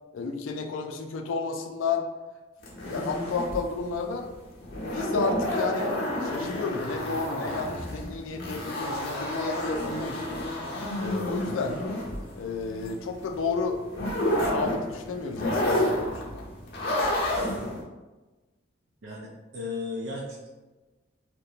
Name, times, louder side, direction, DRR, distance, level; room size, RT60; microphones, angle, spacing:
voice 1, 0.1-2.1 2.8-4.3 4.8-10.2 11.0-11.8 12.3-13.8 14.4-16.4, left 4 dB, 90° left, 5 dB, 0.3 m, -31 dB
sound 1, 2.6-17.8, left 1 dB, 55° left, 0.6 m, -30 dB
voice 2, 19.0-20.5, left 3 dB, 75° right, -4 dB, 0.4 m, -35 dB
2.4 x 2.1 x 2.8 m, 1.2 s
head